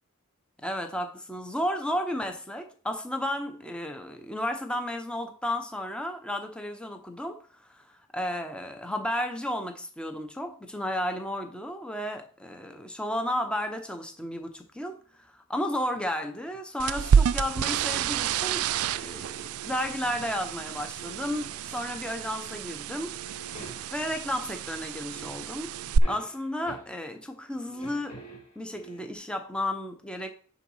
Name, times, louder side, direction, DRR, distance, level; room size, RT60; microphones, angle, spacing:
voice 1, 0.6-23.2 23.9-25.8 26.1-28.2 28.5-30.3, left 1 dB, 5° left, 1.0 m, -33 dB
sound 1, 15.9-18.3 18.8-20.4 20.7-22.1 22.5-22.7 23.0-24.2 24.8-24.9 25.1-27.2 27.5-29.1, right 3 dB, 35° left, 3.7 m, -49 dB
sound 2, 16.8-26.0, right 7 dB, 85° right, 0.4 m, -29 dB
9.2 x 4.0 x 5.6 m
head